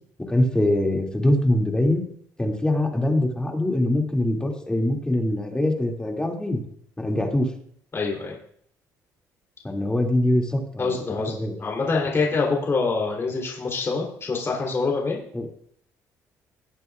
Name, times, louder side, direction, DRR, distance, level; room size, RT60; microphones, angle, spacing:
voice 1, 0.3-2.1 2.4-6.6 7.0-7.5 9.6-10.9 11.3-11.5 15.3-15.5, left 1 dB, 10° left, 1 dB, 2.3 m, -23 dB
voice 2, 7.9-8.3 10.8-11.3 11.6-15.2, left 4 dB, 35° left, -2 dB, 3.2 m, -25 dB
18.5 x 8.0 x 2.4 m, 0.65 s
supercardioid pair, 70°, 7 cm